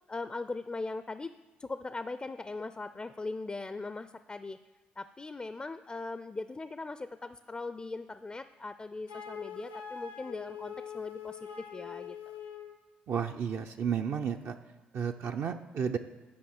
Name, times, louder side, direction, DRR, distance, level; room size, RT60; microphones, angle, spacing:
voice 1, 0.1-4.6 5.0-12.2, left 3 dB, 25° left, 12 dB, 0.4 m, -40 dB
Wind instrument woodwind instrument, 9.1-12.8, left 8 dB, 80° left, 0.8 m, -44 dB
voice 2, 13.1-14.6 14.9-16.0, right 7 dB, 55° right, 4 dB, 0.5 m, -32 dB
8.7 x 5.3 x 6.5 m, 1.3 s
hypercardioid pair, 45°, 5 cm